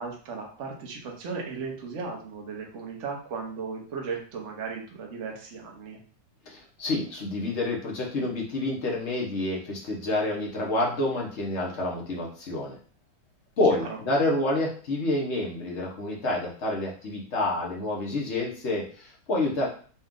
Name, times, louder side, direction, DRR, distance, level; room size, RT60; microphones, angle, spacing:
voice 1, 0.0-6.0 13.9-14.0, right 5 dB, 50° right, 0 dB, 1.0 m, -36 dB
voice 2, 6.5-12.8 13.6-19.7, left 2 dB, 50° left, -2 dB, 0.9 m, -28 dB
4.2 x 2.4 x 3.6 m, 0.43 s
omnidirectional pair, 2.1 m